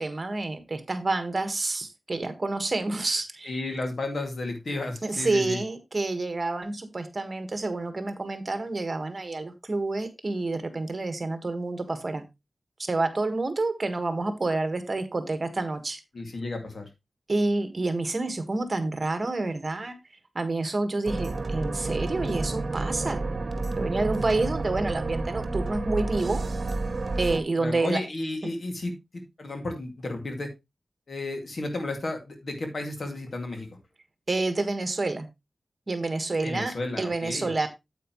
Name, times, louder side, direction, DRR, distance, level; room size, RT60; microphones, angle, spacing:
voice 1, 0.0-3.6 5.0-12.2 12.8-16.0 17.3-19.9 20.3-23.2 23.7-26.4 27.2-28.0 34.3-35.3 35.9-37.7, right 2 dB, 40° right, 8 dB, 1.5 m, -28 dB
voice 2, 3.4-5.6 16.1-16.9 27.6-30.5 31.1-33.7 36.4-37.7, left 2 dB, 60° left, 4 dB, 2.3 m, -33 dB
sound 1, 21.1-27.4, right 3 dB, 60° right, 1.2 m, -30 dB
9.2 x 8.3 x 3.1 m, 0.22 s
wide cardioid pair, 95°, 0 cm